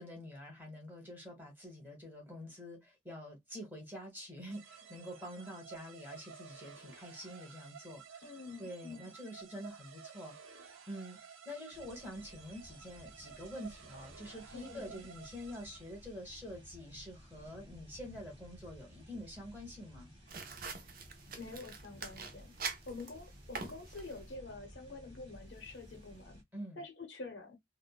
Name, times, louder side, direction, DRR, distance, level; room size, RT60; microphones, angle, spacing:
voice 1, 0.0-20.1 26.5-26.8, equal, 10° right, 1.2 m, -47 dB
sound 1, 4.5-16.2, right 7 dB, 85° right, 0.7 m, -54 dB
voice 2, 8.2-9.1 14.5-15.1 21.4-22.6 22.9-26.4 26.8-27.6, left 3 dB, 60° left, 0.7 m, -47 dB
sound 2, 11.7-26.4, equal, 25° right, 1.5 m, -56 dB
sound 3, 20.3-24.4, right 5 dB, 45° right, 0.5 m, -45 dB
3.6 x 2.1 x 2.3 m
head